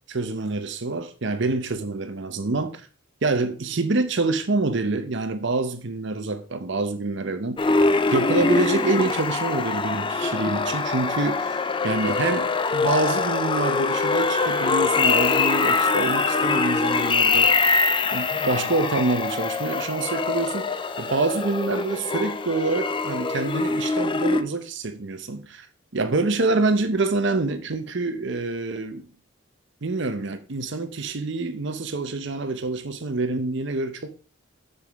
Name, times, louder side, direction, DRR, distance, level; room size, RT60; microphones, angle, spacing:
voice 1, 0.1-2.8 3.2-7.7 8.1-11.6 11.8-17.6 18.1-25.7 25.9-29.1 29.8-34.1, right 3 dB, 55° right, 0.8 m, -26 dB
sound 1, 7.6-24.4, left 4 dB, 25° left, 0.4 m, -23 dB
6.9 x 6.8 x 3.5 m
head